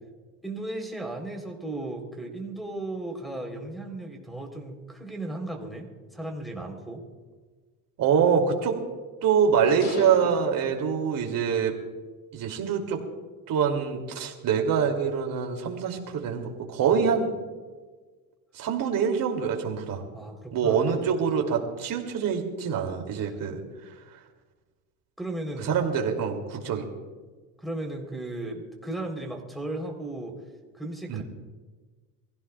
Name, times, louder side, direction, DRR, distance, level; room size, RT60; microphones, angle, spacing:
voice 1, 0.4-7.0 16.8-17.1 20.1-20.8 23.3-23.4 25.2-25.7 27.6-30.3 30.7-31.2, right 2 dB, ahead, 3 dB, 3.7 m, -36 dB
voice 2, 8.0-8.8 9.2-11.7 12.3-13.0 13.5-17.3 18.5-20.0 20.5-23.6 25.6-26.8 31.1-31.2, right 7 dB, 55° right, 2 dB, 2.9 m, -25 dB
sound 1, 9.8-11.6, left 4 dB, 45° left, 1.9 m, -40 dB
24.5 x 16.0 x 2.4 m, 1.4 s
cardioid pair, 110°, 40 cm